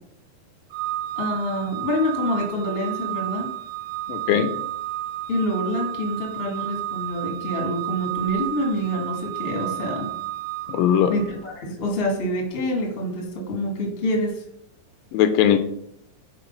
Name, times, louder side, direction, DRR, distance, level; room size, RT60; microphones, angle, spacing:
Organ, 0.7-11.5, right 14 dB, 85° right, 2.4 m, -32 dB
voice 1, 1.2-3.5 5.3-10.1 11.1-14.4, equal, 35° left, 0 dB, 0.9 m, -26 dB
voice 2, 4.1-4.5 10.7-11.1 15.1-15.6, left 9 dB, 85° left, 9 dB, 2.3 m, -19 dB
5.9 x 4.9 x 5.3 m, 0.72 s
omnidirectional pair, 4.1 m